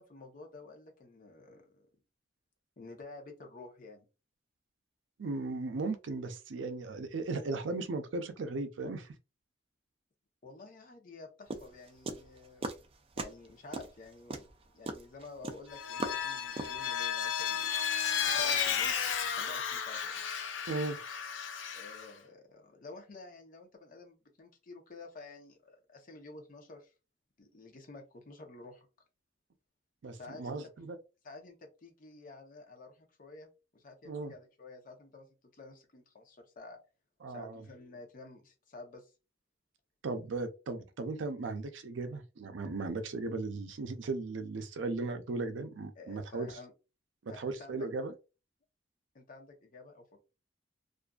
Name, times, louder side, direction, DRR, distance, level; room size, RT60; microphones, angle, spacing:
voice 1, 0.0-1.9 2.8-4.1 10.4-12.7 13.2-14.5 14.7-17.7 18.1-19.0 19.4-20.2 21.7-26.9 27.4-28.9 30.1-30.6 31.2-35.3 35.5-36.8 37.3-39.1 42.0-42.2 46.0-46.7 47.3-47.9 49.1-50.2, left 3 dB, 50° left, 0.7 m, -51 dB
voice 2, 5.2-9.1 20.7-21.0 30.0-31.0 34.1-34.3 37.2-37.6 40.0-46.5 47.2-48.1, right 3 dB, 90° right, 0.5 m, -37 dB
sound 1, 11.5-12.9 13.2-13.5 13.7-16.9, right 2 dB, 30° right, 0.4 m, -38 dB
Vehicle, 15.7-22.1, left 7 dB, 85° left, 0.4 m, -33 dB
2.5 x 2.4 x 2.3 m
head